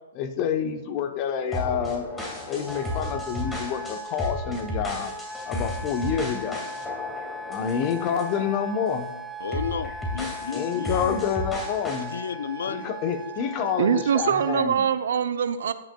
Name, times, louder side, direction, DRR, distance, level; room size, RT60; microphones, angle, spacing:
voice 1, 0.1-2.1 2.5-5.1 5.5-6.6 7.5-9.1 10.5-12.1 12.7-14.9, left 7 dB, 35° left, 7 dB, 1.0 m, -28 dB
sound 1, 1.5-8.5 8.9-9.1 9.5-12.1, left 1 dB, 10° left, 2.1 m, -34 dB
Wind instrument woodwind instrument, 2.6-14.7, right 1 dB, 5° right, 0.5 m, -38 dB
voice 2, 9.4-11.2 12.1-12.9 13.3-13.4, left 7 dB, 70° left, 13 dB, 0.4 m, -33 dB
voice 3, 13.8-15.7, right 8 dB, 65° right, 11 dB, 0.6 m, -23 dB
17.0 x 6.4 x 2.3 m, 1.0 s
hypercardioid pair, 125°, 0 cm